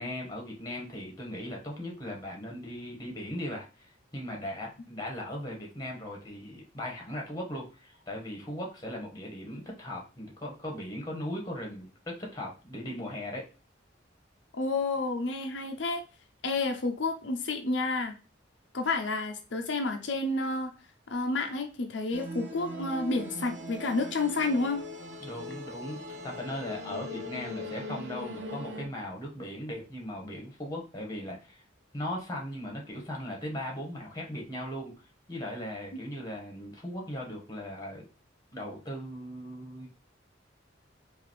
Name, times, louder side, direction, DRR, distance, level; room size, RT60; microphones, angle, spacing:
voice 1, 0.0-13.5 25.2-31.6 31.9-34.9 35.3-38.0 38.5-39.9, left 1 dB, 20° left, 0 dB, 1.3 m, -38 dB
voice 2, 14.5-16.0 16.4-18.1 18.7-20.7 21.1-24.8 35.9-36.0, left 3 dB, 75° left, 4 dB, 0.6 m, -30 dB
sound 1, 22.1-28.8, left 1 dB, 70° right, 0.6 m, -40 dB
4.9 x 2.7 x 3.1 m, 0.33 s
head